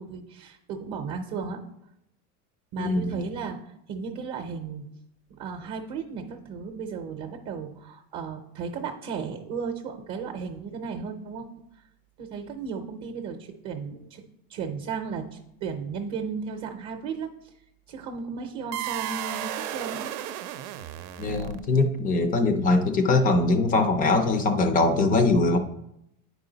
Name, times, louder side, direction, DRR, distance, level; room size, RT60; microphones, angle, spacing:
voice 1, 0.0-1.6 2.7-4.9 5.4-11.5 12.2-14.2 14.5-17.5 17.9-20.1, right 5 dB, 40° right, 4 dB, 0.7 m, -35 dB
voice 2, 2.8-3.2 21.2-25.6, left 3 dB, 20° left, 8 dB, 0.4 m, -22 dB
sound 1, 18.7-21.9, right 12 dB, 80° right, 0.7 m, -34 dB
9.3 x 4.9 x 3.9 m, 0.82 s
cardioid pair, 155°, 43 cm